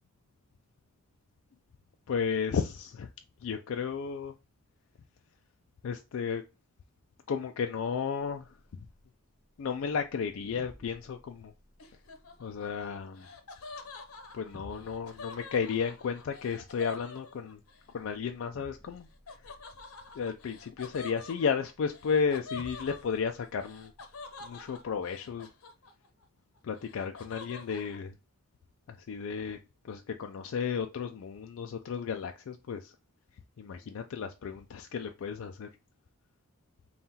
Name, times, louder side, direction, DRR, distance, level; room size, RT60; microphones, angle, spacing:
voice 1, 2.1-3.1 3.4-4.3 5.8-6.4 7.3-8.5 9.6-11.5 12.4-13.3 14.3-17.6 17.9-19.1 20.2-23.9 24.4-25.5 26.6-28.1 28.9-29.6 29.9-32.9 33.6-35.7, left 6 dB, 70° left, 0.3 m, -33 dB
sound 1, 9.0-24.9, left 1 dB, 10° left, 0.6 m, -58 dB
Laughter, 11.8-17.8 19.3-26.2 26.5-28.0, left 3 dB, 85° left, 0.8 m, -47 dB
5.4 x 2.4 x 2.8 m
head